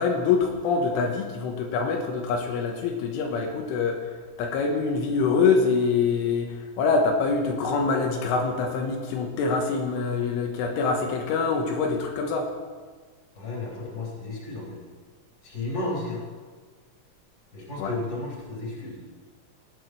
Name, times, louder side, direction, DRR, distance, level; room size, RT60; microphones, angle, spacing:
voice 1, 0.0-12.5 17.8-17.9, left 4 dB, 80° left, 1 dB, 3.5 m, -25 dB
voice 2, 13.4-14.8 15.4-16.2 17.5-19.0, left 2 dB, 25° left, -4 dB, 3.9 m, -33 dB
19.0 x 9.5 x 4.7 m, 1.4 s
omnidirectional pair, 5.7 m